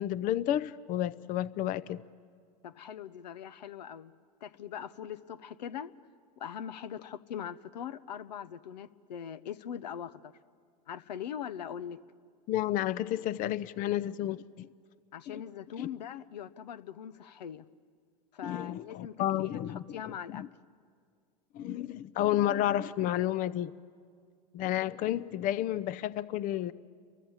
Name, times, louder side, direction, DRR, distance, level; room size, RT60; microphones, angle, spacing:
voice 1, 0.0-2.0 12.5-14.7 15.3-15.4 15.8-15.9 18.4-20.5 21.5-23.7 24.5-26.7, left 12 dB, 40° left, 18 dB, 0.6 m, -31 dB
voice 2, 2.6-4.1 4.4-5.9 6.4-10.3 10.9-12.0 15.1-17.6 18.3-20.5, left 9 dB, 85° left, 17 dB, 0.8 m, -41 dB
30.0 x 23.5 x 7.3 m, 2.1 s
hypercardioid pair, 105°, 21 cm